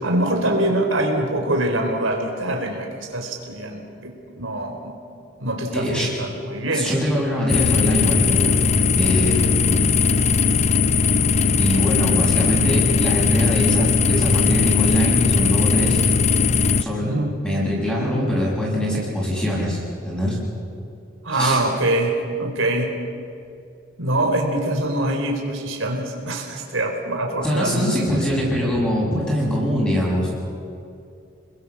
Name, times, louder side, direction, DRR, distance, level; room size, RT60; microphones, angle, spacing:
voice 1, 0.0-4.9 5.4-6.9 17.0-17.3 21.2-22.9 24.0-27.9, right 1 dB, 85° right, 2 dB, 4.0 m, -24 dB
voice 2, 5.7-6.1 6.7-8.6 8.9-9.6 11.6-16.0 16.8-17.1 17.4-20.4 21.3-21.6 27.4-30.3, equal, 5° left, -5 dB, 7.8 m, -23 dB
sound 1, 7.5-16.8, left 5 dB, 35° left, 0.5 m, -19 dB
29.0 x 21.5 x 7.3 m, 2.5 s
head